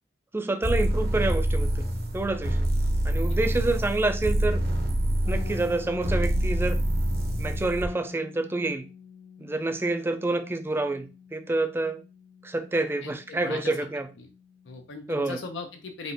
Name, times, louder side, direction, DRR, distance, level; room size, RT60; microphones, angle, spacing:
voice 1, 0.3-1.7 2.1-2.6 3.0-4.6 5.3-6.8 7.4-8.9 9.4-12.0 12.4-14.1 15.1-15.4, right 2 dB, 15° right, 0.3 m, -28 dB
sound 1, 0.6-7.9, right 1 dB, 55° right, 0.8 m, -26 dB
sound 2, 5.2-15.0, left 6 dB, 55° left, 1.4 m, -48 dB
voice 2, 13.0-13.8 14.2-14.3 14.6-16.1, left 3 dB, 75° left, 0.6 m, -38 dB
4.8 x 2.5 x 2.6 m
head